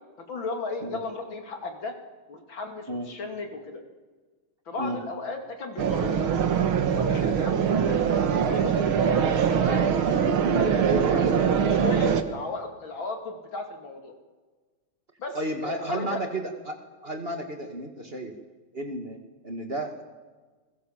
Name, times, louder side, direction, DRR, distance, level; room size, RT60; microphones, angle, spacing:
voice 1, 0.2-1.9 2.3-3.8 4.7-6.5 6.9-8.0 8.5-8.8 9.6-10.0 10.3-10.9 11.5-14.1 15.2-15.4 15.6-16.2, left 3 dB, 70° left, 4 dB, 3.5 m, -35 dB
sound 1, 5.8-12.2, right 7 dB, 90° right, 2.4 m, -23 dB
voice 2, 10.8-11.4 15.3-16.8 17.0-18.3 18.7-20.0, right 1 dB, 30° right, 5 dB, 2.3 m, -32 dB
29.5 x 21.5 x 7.4 m, 1.4 s
omnidirectional pair, 2.2 m